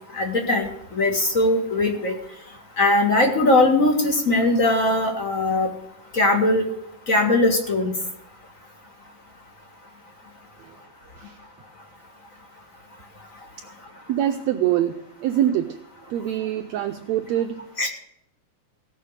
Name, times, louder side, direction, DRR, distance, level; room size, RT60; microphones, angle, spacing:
voice 1, 0.1-0.7 1.0-2.1 2.8-5.7 6.1-6.7 7.1-7.9 17.8-17.9, left 2 dB, 30° left, 3 dB, 1.8 m, -20 dB
voice 2, 14.1-15.8 16.1-17.7, right 11 dB, 85° right, 8 dB, 1.5 m, -24 dB
17.0 x 6.7 x 6.5 m, 0.76 s
omnidirectional pair, 3.8 m